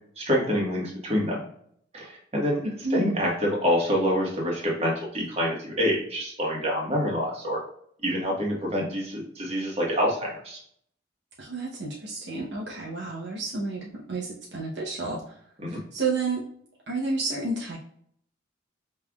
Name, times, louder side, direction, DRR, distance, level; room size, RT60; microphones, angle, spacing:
voice 1, 0.2-1.4 1.9-2.6 2.9-7.6 8.0-10.6 15.6-15.8, equal, 30° right, -3 dB, 1.4 m, -26 dB
voice 2, 2.6-3.3 11.4-15.4 15.7-16.4 16.9-17.8, right 3 dB, 60° right, -3 dB, 0.8 m, -31 dB
5.4 x 3.3 x 2.3 m, 0.65 s
head